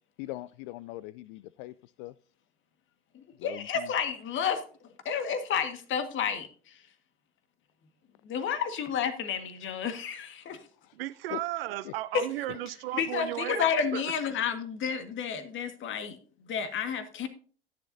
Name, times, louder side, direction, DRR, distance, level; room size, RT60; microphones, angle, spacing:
voice 1, 0.2-2.1 3.4-3.9 10.8-11.0 11.3-11.4 11.8-11.9 12.5-12.6 14.1-14.2, left 17 dB, 60° left, 0.4 m, -41 dB
voice 2, 3.1-4.6 5.0-6.8 8.2-10.7 12.1-12.3 12.9-16.2 16.4-17.3, left 7 dB, 40° left, 1.6 m, -31 dB
voice 3, 10.9-13.6 13.9-14.0, right 16 dB, 70° right, 0.7 m, -34 dB
12.5 x 10.0 x 2.7 m
hypercardioid pair, 80°, 30 cm